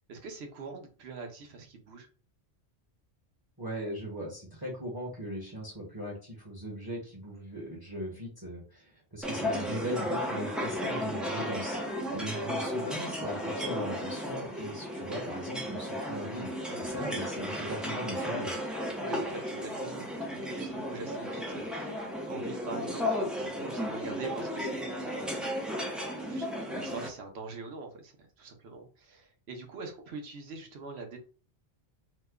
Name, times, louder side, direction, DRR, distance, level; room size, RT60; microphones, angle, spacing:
voice 1, 0.1-2.1 16.7-17.0 19.0-21.9 22.3-25.8 26.3-31.2, right 4 dB, 70° right, 4 dB, 0.9 m, -44 dB
voice 2, 3.6-11.8 12.1-16.5 16.8-18.5, equal, 20° right, -2 dB, 0.9 m, -39 dB
sound 1, 9.2-27.1, equal, ahead, 0.4 m, -34 dB
2.9 x 2.1 x 3.5 m, 0.38 s
omnidirectional pair, 1.1 m